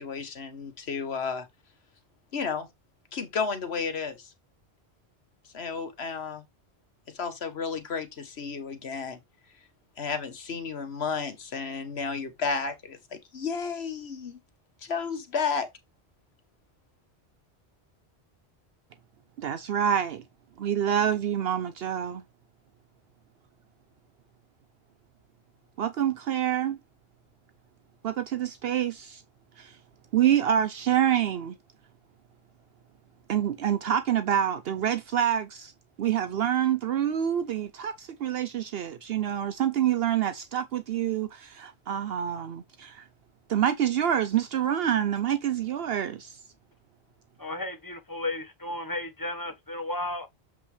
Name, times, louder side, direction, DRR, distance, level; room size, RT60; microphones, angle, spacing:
voice 1, 0.0-1.5 2.3-2.7 3.1-4.3 5.5-6.4 7.1-9.2 10.0-14.4 14.8-15.7, left 5 dB, 80° left, 1.5 m, -32 dB
voice 2, 19.4-20.2 20.6-22.2 25.8-26.8 28.0-29.2 29.6-29.8 30.1-31.6 33.3-35.7 36.0-43.0 43.5-46.4, right 10 dB, 70° right, 0.8 m, -27 dB
voice 3, 47.4-50.3, left 2 dB, 20° left, 1.3 m, -34 dB
7.5 x 5.4 x 3.3 m
omnidirectional pair, 1.1 m